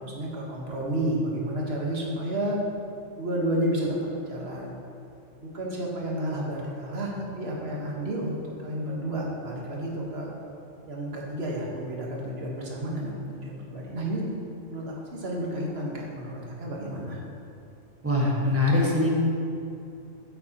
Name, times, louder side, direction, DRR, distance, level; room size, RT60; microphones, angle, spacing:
voice 1, 0.0-2.6 3.2-4.7 5.4-10.3 10.9-14.2 14.7-17.2, right 1 dB, 55° right, -3 dB, 1.5 m, -31 dB
voice 2, 18.0-19.2, left 2 dB, 10° right, -5 dB, 1.3 m, -22 dB
8.4 x 7.9 x 2.9 m, 2.7 s
omnidirectional pair, 1.3 m